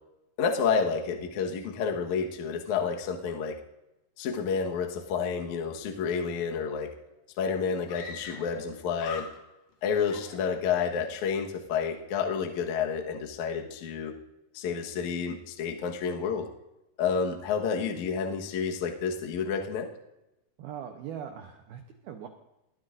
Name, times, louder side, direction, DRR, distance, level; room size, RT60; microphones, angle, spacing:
voice 1, 0.4-3.6 4.2-6.9 7.4-9.3 9.8-14.1 14.5-16.5 17.0-19.9, left 6 dB, 80° left, 2 dB, 1.7 m, -30 dB
Screaming, 7.1-7.2 7.9-8.7 8.9-9.7 10.1-11.0, left 5 dB, 60° left, 2.4 m, -42 dB
voice 2, 20.6-22.3, right 9 dB, 85° right, 4 dB, 2.1 m, -41 dB
22.5 x 12.0 x 2.6 m, 0.92 s
omnidirectional pair, 5.7 m